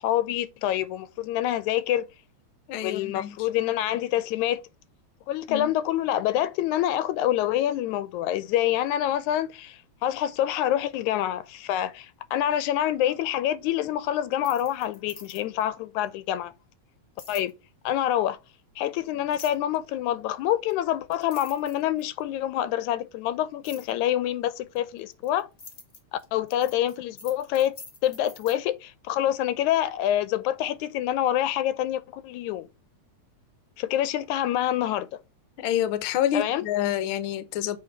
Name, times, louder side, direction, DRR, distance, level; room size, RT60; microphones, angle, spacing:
voice 1, 0.0-2.1 2.8-4.6 5.3-16.5 17.3-17.5 17.9-18.4 18.8-25.5 26.1-27.8 28.0-32.7 33.8-35.2 36.3-36.6, left 12 dB, 90° left, 2.1 m, -26 dB
voice 2, 2.7-3.5 5.5-5.7 35.6-37.8, left 11 dB, 70° left, 1.3 m, -28 dB
sound 1, 14.3-15.7 17.2-17.5 19.3-19.8 20.7-20.8 21.1-22.2 23.6-23.9 24.7-28.6, left 3 dB, 40° left, 1.2 m, -46 dB
7.5 x 3.4 x 4.6 m
omnidirectional pair, 3.3 m